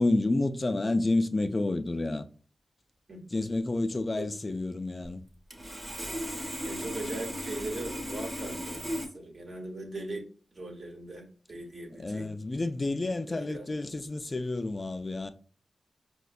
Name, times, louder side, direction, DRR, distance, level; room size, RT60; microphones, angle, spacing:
voice 1, 0.0-2.3 3.3-5.2 11.9-15.3, left 2 dB, 35° left, 0.3 m, -29 dB
Sawing, 5.5-9.0, equal, 30° right, 1.0 m, -36 dB
voice 2, 6.4-10.2 10.5-12.4 13.3-13.7, right 2 dB, 65° right, 1.0 m, -40 dB
4.9 x 2.1 x 2.3 m
cardioid pair, 60°, 0 cm